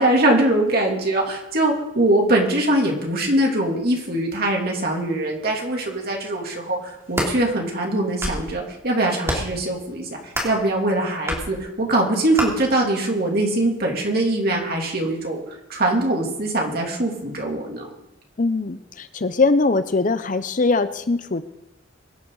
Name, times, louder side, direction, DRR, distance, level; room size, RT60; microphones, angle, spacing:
voice 1, 0.0-17.9, right 1 dB, 50° right, 0 dB, 2.9 m, -22 dB
sound 1, 6.9-7.3 8.0-8.5 9.2-9.6 10.3-10.6 11.3-11.5 12.4-12.5, equal, 15° right, 3.1 m, -26 dB
voice 2, 18.4-21.4, left 3 dB, 40° left, 12 dB, 0.6 m, -21 dB
23.5 x 9.8 x 4.0 m, 0.88 s
head